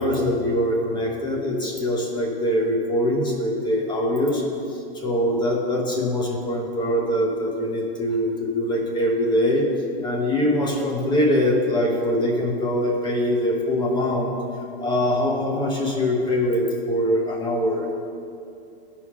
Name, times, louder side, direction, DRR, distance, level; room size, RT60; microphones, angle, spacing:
voice 1, 0.0-4.4 4.7-9.7 10.0-14.4 14.8-17.9, left 1 dB, 15° left, -1 dB, 1.0 m, -23 dB
14.0 x 4.9 x 3.6 m, 2.6 s
supercardioid pair, 150°, 30 cm